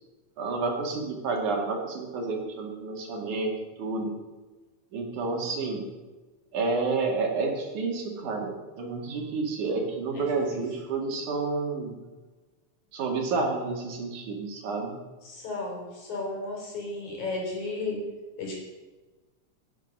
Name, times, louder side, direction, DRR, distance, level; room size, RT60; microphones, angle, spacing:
voice 1, 0.4-3.5 3.8-4.1 4.9-5.8 6.5-11.9 12.9-15.0, right 3 dB, 90° right, 2 dB, 3.7 m, -30 dB
voice 2, 10.1-10.6 15.2-18.0 18.4-18.6, left 3 dB, 75° left, -1 dB, 5.3 m, -34 dB
17.5 x 10.0 x 5.5 m, 1.2 s
omnidirectional pair, 3.4 m